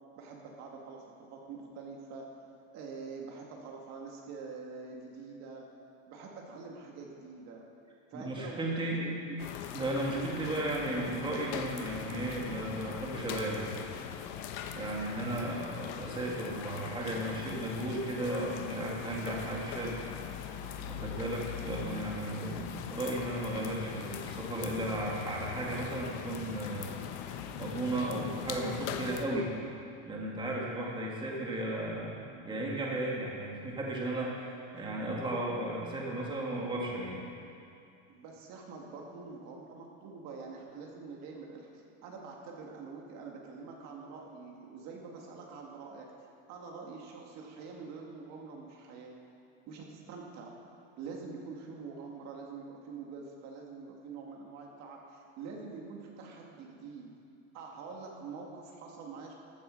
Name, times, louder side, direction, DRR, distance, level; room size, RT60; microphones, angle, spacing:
voice 1, 0.1-1.0 1.3-2.3 2.7-5.7 6.1-7.6 8.1-9.4 10.1-10.4 30.8-30.9 31.6-31.9 32.1-32.5 38.1-46.1 46.5-49.2 49.7-50.5 51.0-57.1 57.5-59.3, right 4 dB, 50° right, 0 dB, 2.1 m, -45 dB
voice 2, 8.1-9.0 9.7-13.8 14.7-20.0 20.5-26.9 27.3-29.5 30.1-32.2 32.4-37.3, right 1 dB, 15° right, -3 dB, 2.0 m, -35 dB
sound 1, 9.4-29.3, left 8 dB, 75° left, 1.1 m, -41 dB
14.5 x 9.2 x 6.4 m, 2.6 s
cardioid pair, 150°, 34 cm